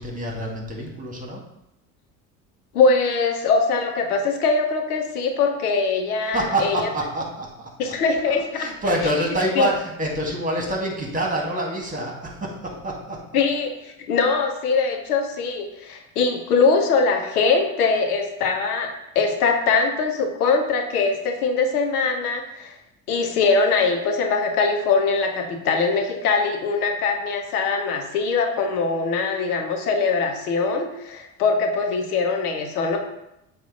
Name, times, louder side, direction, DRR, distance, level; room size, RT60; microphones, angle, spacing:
voice 1, 0.0-1.4 6.3-7.9 8.3-13.2, right 1 dB, 20° right, 0 dB, 1.9 m, -26 dB
voice 2, 2.7-6.9 7.8-8.7 9.6-9.7 13.3-22.7 23.1-33.0, left 4 dB, 90° left, 4 dB, 0.9 m, -22 dB
7.4 x 2.7 x 5.1 m, 0.84 s
hypercardioid pair, 75°, 44 cm